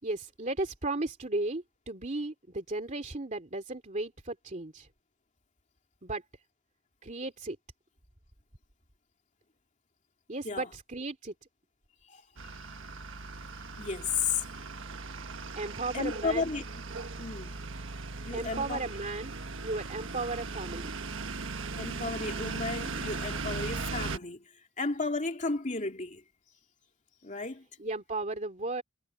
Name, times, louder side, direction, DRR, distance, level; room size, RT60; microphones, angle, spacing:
voice 1, 0.0-4.9 6.0-6.2 7.0-7.6 10.3-11.3 15.5-16.5 18.3-19.3 19.6-21.0 27.8-28.8, right 2 dB, 35° right, 2.8 m, -35 dB
sound 1, 12.4-24.2, right 3 dB, 65° right, 1.4 m, -38 dB
voice 2, 13.8-14.4 15.9-16.6 17.2-17.6 18.3-18.8 21.8-24.4 24.8-26.2 27.2-27.6, left 4 dB, 35° left, 2.6 m, -33 dB
head